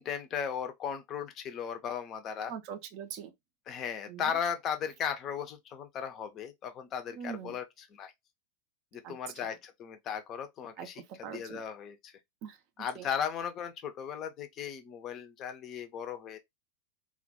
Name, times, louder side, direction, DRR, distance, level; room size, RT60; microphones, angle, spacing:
voice 1, 0.0-2.5 3.7-8.1 8.9-12.1 12.8-16.4, left 8 dB, 30° left, 0.4 m, -36 dB
voice 2, 2.5-3.3 4.1-4.3 7.1-7.6 9.0-9.1 9.4-9.5 10.8-11.6 12.4-12.6 13.0-13.1, right 7 dB, 40° right, 0.4 m, -42 dB
2.2 x 2.1 x 2.6 m
figure-of-eight pair, 90°, 0 cm